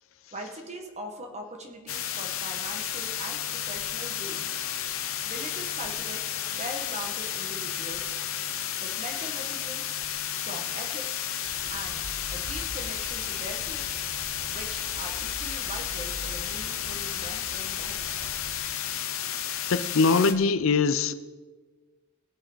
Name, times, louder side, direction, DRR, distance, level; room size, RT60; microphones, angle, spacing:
voice 1, 0.3-4.6 5.2-8.2 8.8-10.0 10.3-11.2 11.7-12.0 12.3-14.0 14.5-18.1, right 1 dB, 35° right, 3 dB, 1.8 m, -41 dB
sound 1, 1.9-20.3, left 10 dB, 90° left, 1.0 m, -32 dB
sound 2, 11.4-18.6, equal, 15° right, 4.4 m, -44 dB
voice 2, 19.7-21.1, left 4 dB, 70° left, 13 dB, 0.6 m, -22 dB
19.5 x 7.8 x 4.1 m, 1.3 s
head